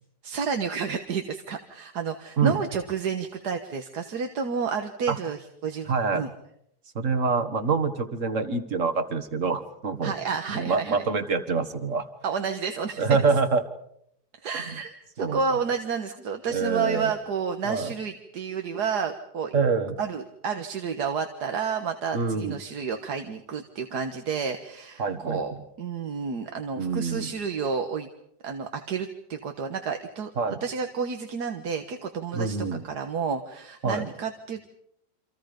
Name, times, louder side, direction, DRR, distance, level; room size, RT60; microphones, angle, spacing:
voice 1, 0.2-6.3 10.0-11.1 12.2-13.2 14.4-19.5 20.0-28.1 28.4-34.6, right 6 dB, 75° right, 5 dB, 1.9 m, -30 dB
voice 2, 5.9-6.3 7.0-10.2 10.5-12.1 13.0-13.6 15.2-15.4 16.5-17.1 17.7-17.9 19.5-20.0 22.1-22.6 25.0-25.4 26.8-27.3 30.4-30.6 32.3-32.8 33.8-34.1, right 4 dB, 50° right, 9 dB, 2.0 m, -25 dB
29.0 x 26.0 x 5.2 m, 0.75 s
omnidirectional pair, 1.8 m